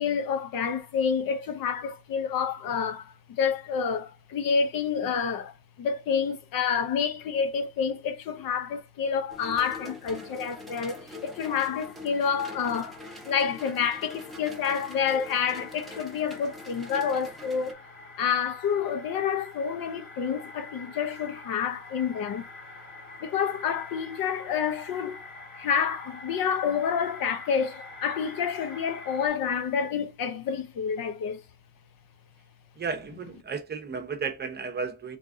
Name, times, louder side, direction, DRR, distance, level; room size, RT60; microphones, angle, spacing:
voice 1, 0.0-17.8 18.2-22.5 23.2-25.2 25.5-31.4, left 7 dB, 75° left, 0.9 m, -28 dB
Rainwater down pipe, 9.3-17.7, left 2 dB, ahead, 1.0 m, -44 dB
sound 1, 11.1-29.3, left 2 dB, 50° left, 1.9 m, -47 dB
voice 2, 32.8-35.2, right 5 dB, 30° right, 0.8 m, -33 dB
3.9 x 3.5 x 3.6 m
cardioid pair, 155°, 35 cm